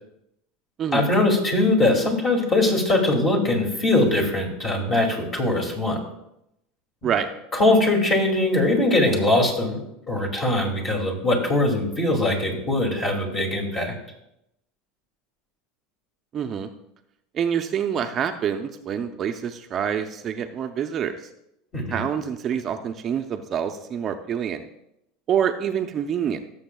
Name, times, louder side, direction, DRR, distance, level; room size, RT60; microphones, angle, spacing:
voice 1, 0.9-6.0 7.5-9.8 10.1-13.9 21.7-22.0, left 2 dB, 30° left, 1 dB, 2.4 m, -21 dB
voice 2, 16.3-16.7 17.3-21.1 21.9-24.7 25.3-26.4, right 8 dB, 35° right, 6 dB, 0.5 m, -26 dB
17.0 x 7.1 x 2.3 m, 0.82 s
supercardioid pair, 135°, 0 cm